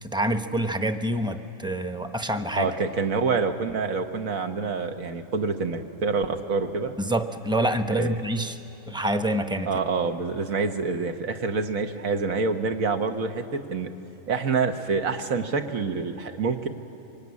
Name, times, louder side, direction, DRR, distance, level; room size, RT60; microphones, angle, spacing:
voice 1, 0.0-2.7 7.0-8.6 8.9-9.7, right 1 dB, 5° right, 8 dB, 0.6 m, -26 dB
voice 2, 2.6-6.9 7.9-8.1 9.7-13.9 14.3-16.7, right 4 dB, 90° right, 5 dB, 1.7 m, -27 dB
25.0 x 23.5 x 9.6 m, 3.0 s
omnidirectional pair, 1.4 m